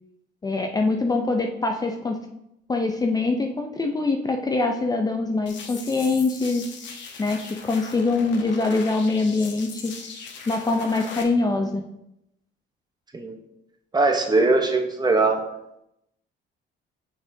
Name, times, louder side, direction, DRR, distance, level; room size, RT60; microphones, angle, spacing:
voice 1, 0.4-2.2 2.7-6.7 7.2-7.4 7.6-9.9 10.5-11.8, left 3 dB, 20° left, 3 dB, 0.5 m, -23 dB
sound 1, 5.5-11.2, left 5 dB, 65° left, 1.1 m, -40 dB
voice 2, 13.9-15.4, right 3 dB, 20° right, 5 dB, 0.9 m, -20 dB
6.3 x 6.0 x 2.7 m, 0.83 s
cardioid pair, 105°, 21 cm